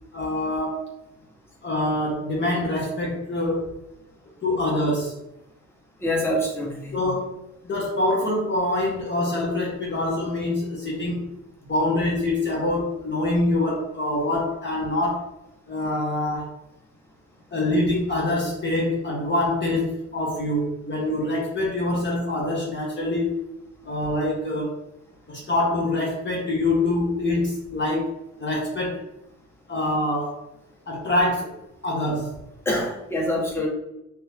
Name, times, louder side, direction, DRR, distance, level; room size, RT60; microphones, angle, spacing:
voice 1, 0.1-0.8 1.6-3.7 4.4-5.1 6.9-11.3 11.7-15.3 15.7-16.5 17.5-23.4 23.8-24.7 25.3-29.0 29.7-30.4 30.9-31.6 31.8-32.3, left 1 dB, 40° left, -3 dB, 0.8 m, -25 dB
voice 2, 6.0-7.0 32.6-33.7, left 1 dB, 10° left, -4 dB, 1.1 m, -25 dB
2.9 x 2.6 x 3.4 m, 0.89 s
cardioid pair, 90°, 30 cm